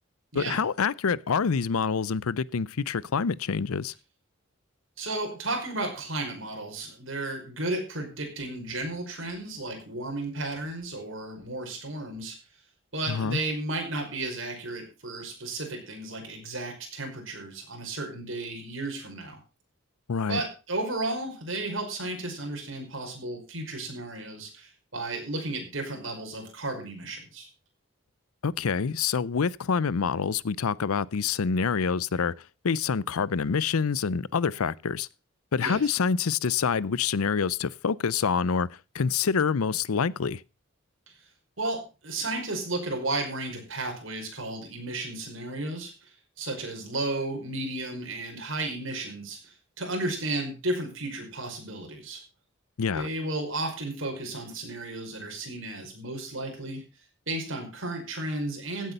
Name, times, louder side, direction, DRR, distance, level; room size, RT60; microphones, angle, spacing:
voice 1, 0.3-3.9 13.1-13.4 20.1-20.4 28.4-32.3 32.6-35.1 35.5-38.7 38.9-40.4 52.8-53.1, left 5 dB, 85° left, 0.6 m, -26 dB
voice 2, 5.0-12.4 12.9-19.4 20.3-27.5 35.6-35.9 41.6-45.9 46.4-52.2 52.9-56.8 57.3-58.9, right 2 dB, 65° right, 5.2 m, -33 dB
16.0 x 8.2 x 5.5 m
head